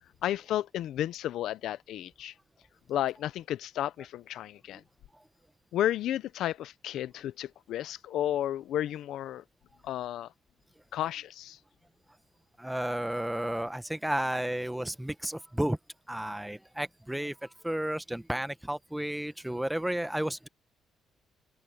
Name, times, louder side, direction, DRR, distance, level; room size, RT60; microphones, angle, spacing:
voice 1, 0.2-2.3 2.9-4.8 5.7-9.4 9.8-10.3 10.9-11.6, left 12 dB, 80° left, 0.7 m, -32 dB
voice 2, 12.6-15.8 16.1-17.3 17.6-20.5, right 1 dB, 5° right, 1.2 m, -32 dB
open air
cardioid pair, 90°, 0 cm